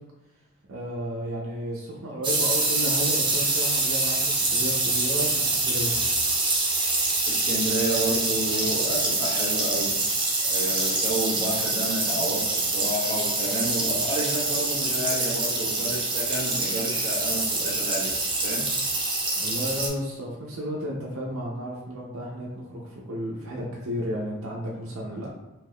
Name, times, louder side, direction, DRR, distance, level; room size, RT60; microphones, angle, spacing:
voice 1, 0.7-5.9 19.4-25.3, equal, 80° right, -3 dB, 0.6 m, -33 dB
sound 1, 2.2-19.9, right 2 dB, 25° right, 0.6 m, -25 dB
voice 2, 7.3-10.0 10.4-18.1 18.4-18.6, right 1 dB, 15° left, -8 dB, 1.1 m, -30 dB
3.5 x 2.8 x 2.2 m, 1.1 s
head